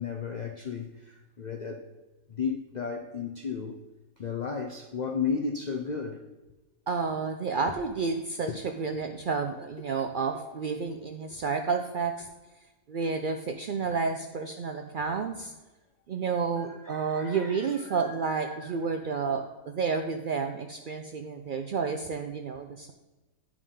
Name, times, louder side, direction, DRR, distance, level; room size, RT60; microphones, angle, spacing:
voice 1, 0.0-1.9 2.3-3.8 4.2-6.3 8.5-8.6 16.6-18.8, left 5 dB, 60° left, 0.4 m, -34 dB
voice 2, 6.9-12.3 12.9-15.5 16.1-22.9, right 5 dB, 80° right, 0.4 m, -30 dB
11.0 x 4.8 x 3.7 m
omnidirectional pair, 1.5 m